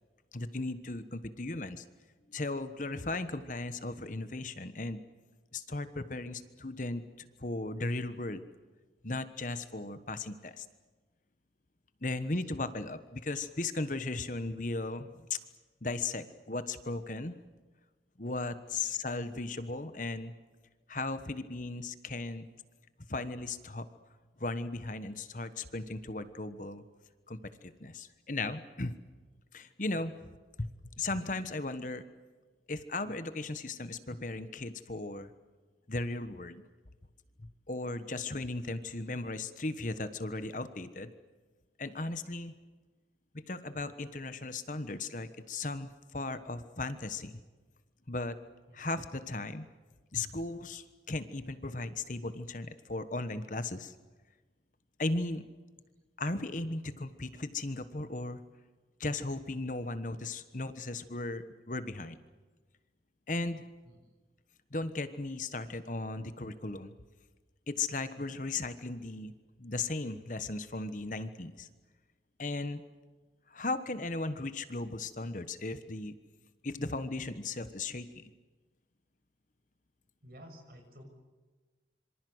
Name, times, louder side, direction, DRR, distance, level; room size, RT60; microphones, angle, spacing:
voice 1, 0.3-1.8 2.3-5.0 5.5-8.4 9.0-10.7 12.0-15.4 15.8-17.4 18.2-20.3 20.9-22.5 23.1-23.9 24.4-26.8 27.3-28.9 29.5-30.1 30.6-30.7 31.0-32.0 32.7-35.3 35.9-36.6 37.4-41.1 41.8-42.5 43.3-47.4 48.1-48.4 48.7-49.7 50.1-54.0 55.0-55.4 56.2-58.4 59.0-62.2 63.3-63.6 64.7-66.9 67.7-69.3 69.6-71.7 72.4-72.8 73.5-76.2 76.6-78.3, left 2 dB, 45° left, 12 dB, 1.3 m, -36 dB
voice 2, 12.1-12.4 18.7-19.0 30.1-30.2 48.7-48.9 63.8-64.0 80.2-81.0, equal, 55° right, 5 dB, 6.1 m, -54 dB
26.5 x 24.5 x 8.0 m, 1.3 s
head